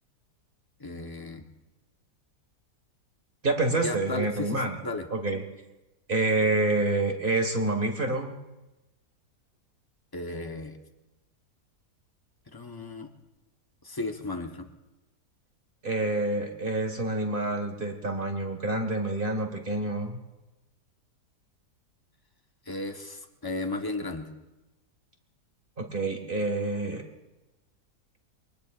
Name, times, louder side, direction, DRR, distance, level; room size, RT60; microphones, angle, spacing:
voice 1, 0.8-1.5 3.8-5.1 10.1-10.8 12.5-13.1 13.8-14.7 22.6-24.3, left 2 dB, 15° left, 4 dB, 0.9 m, -35 dB
voice 2, 3.4-4.8 5.1-5.4 6.1-8.4 15.8-20.2 25.8-27.0, right 2 dB, 30° right, 4 dB, 1.8 m, -27 dB
24.0 x 19.5 x 2.5 m, 1.0 s
omnidirectional pair, 1.8 m